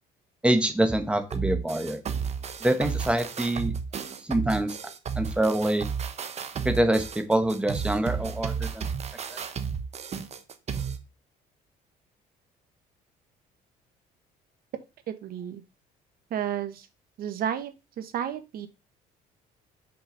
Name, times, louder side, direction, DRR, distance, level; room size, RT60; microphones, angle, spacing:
voice 1, 0.4-2.0 2.6-3.7 4.3-4.8 5.2-5.9 6.6-8.9 9.3-9.4, right 1 dB, 5° right, 7 dB, 1.2 m, -25 dB
sound 1, 1.3-11.0, right 6 dB, 40° right, 0.9 m, -32 dB
voice 2, 15.1-15.6 16.3-16.9 17.2-18.7, right 9 dB, 60° right, 9 dB, 1.2 m, -32 dB
5.9 x 5.1 x 3.9 m, 0.27 s
cardioid pair, 110°, 17 cm